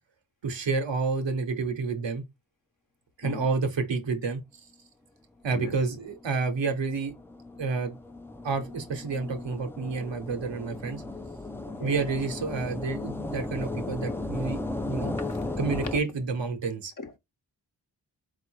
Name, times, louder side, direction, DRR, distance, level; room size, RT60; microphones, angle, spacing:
voice 1, 0.4-2.2 3.2-4.4 5.4-7.1 7.6-8.0 8.4-11.0 11.8-14.6 14.9-15.1 15.6-16.9, right 4 dB, 80° right, 1.0 m, -29 dB
voice 2, 5.5-5.8 11.7-11.9 15.3-15.4 16.0-16.1 17.0-17.2, left 4 dB, 45° left, 0.9 m, -39 dB
sound 1, 5.9-16.0, left 2 dB, 5° left, 0.4 m, -36 dB
3.8 x 2.5 x 4.5 m
cardioid pair, 45°, 44 cm